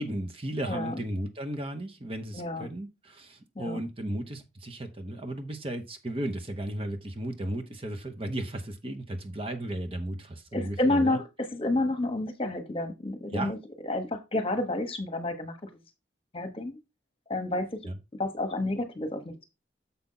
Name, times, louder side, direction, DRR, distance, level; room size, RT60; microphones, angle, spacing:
voice 1, 0.0-11.2 13.3-13.5 17.9-18.0, right 1 dB, 30° right, 5 dB, 0.9 m, -35 dB
voice 2, 0.7-1.0 2.3-2.7 3.5-3.8 10.5-13.6 13.8-15.8 16.3-16.8 17.3-17.8 18.2-19.4, left 2 dB, 30° left, 7 dB, 1.2 m, -30 dB
7.1 x 5.2 x 3.9 m, 0.24 s
head